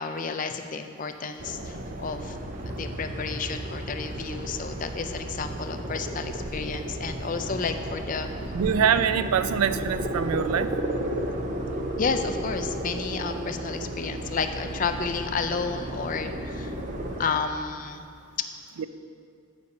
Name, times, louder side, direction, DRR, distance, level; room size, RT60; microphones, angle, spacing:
voice 1, 0.0-2.4 2.7-8.3 12.0-16.7 17.2-18.1, left 5 dB, 35° left, 7 dB, 0.4 m, -31 dB
sound 1, 1.4-17.2, right 1 dB, 35° right, 0.6 m, -33 dB
voice 2, 8.5-10.7 18.8-18.9, right 7 dB, 85° right, 12 dB, 0.4 m, -24 dB
6.7 x 5.3 x 7.0 m, 2.3 s
head